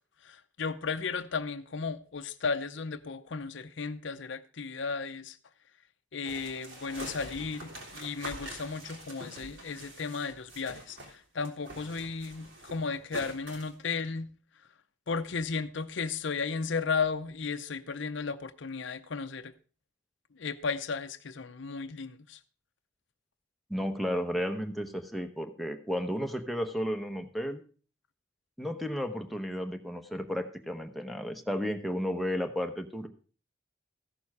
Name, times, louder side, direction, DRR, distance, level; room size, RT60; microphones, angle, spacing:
voice 1, 0.2-5.4 6.1-14.3 15.1-19.5 20.3-22.4, left 5 dB, 65° left, 0.6 m, -34 dB
sound 1, 6.3-11.2 11.4-13.7, right 1 dB, 65° right, 3.5 m, -45 dB
voice 2, 23.7-27.6 28.6-33.1, equal, ahead, 1.0 m, -33 dB
15.0 x 7.0 x 4.8 m
head